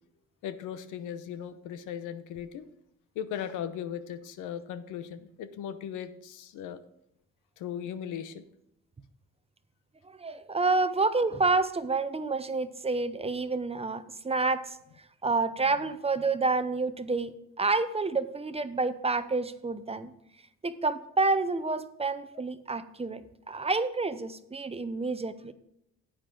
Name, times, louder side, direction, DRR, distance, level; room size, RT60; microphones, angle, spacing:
voice 1, 0.4-2.7 3.1-6.8 7.6-8.4, left 9 dB, 90° left, 12 dB, 0.8 m, -38 dB
voice 2, 10.0-14.8 15.2-20.1 20.6-23.2 23.5-25.5, right 3 dB, 20° right, 12 dB, 0.7 m, -29 dB
10.0 x 8.8 x 3.8 m, 0.77 s
cardioid pair, 90°, 30 cm